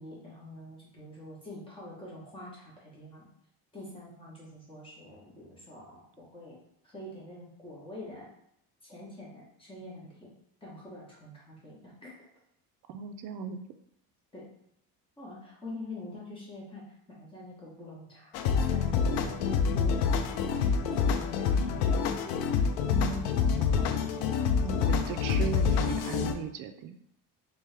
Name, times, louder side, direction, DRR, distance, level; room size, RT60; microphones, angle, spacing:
voice 1, 0.0-3.2 3.7-6.6 6.8-8.3 8.8-10.3 10.6-12.1 14.3-14.5 15.2-16.8 17.2-21.6, left 1 dB, 15° left, -6 dB, 1.2 m, -46 dB
voice 2, 12.9-13.6 22.9-24.1 24.6-27.0, right 8 dB, 55° right, 8 dB, 0.4 m, -38 dB
sound 1, 18.3-26.3, left 6 dB, 70° left, 0.5 m, -27 dB
3.4 x 3.1 x 3.4 m, 0.72 s
cardioid pair, 160°, 38 cm